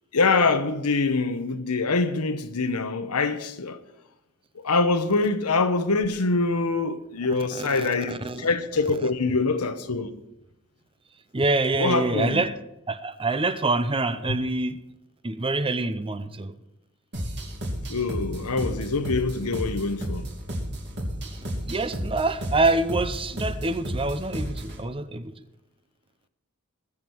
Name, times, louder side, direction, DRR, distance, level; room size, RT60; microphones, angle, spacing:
voice 1, 0.1-3.8 4.5-10.1 11.8-12.4 14.3-14.4 17.9-20.3, left 3 dB, 85° left, 1.0 m, -24 dB
voice 2, 7.8-8.5 11.3-12.5 12.9-14.8 15.2-16.5 21.7-25.3, right 2 dB, 25° right, 0.7 m, -26 dB
sound 1, 17.1-24.8, equal, 55° right, 3.0 m, -32 dB
20.5 x 7.3 x 4.6 m
head